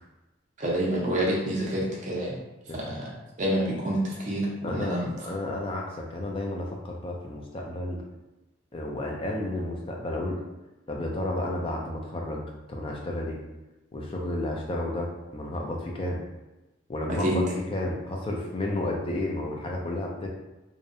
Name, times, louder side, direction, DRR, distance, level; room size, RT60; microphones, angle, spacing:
voice 1, 0.6-2.4 2.7-5.1 17.2-17.4, right 1 dB, 35° right, -3 dB, 0.5 m, -28 dB
voice 2, 4.6-8.0 8.7-10.4 10.9-12.4 12.7-13.4 13.9-16.2 16.9-17.4 17.7-20.3, left 1 dB, 25° left, 0 dB, 0.3 m, -32 dB
2.6 x 2.0 x 2.5 m, 1.0 s
head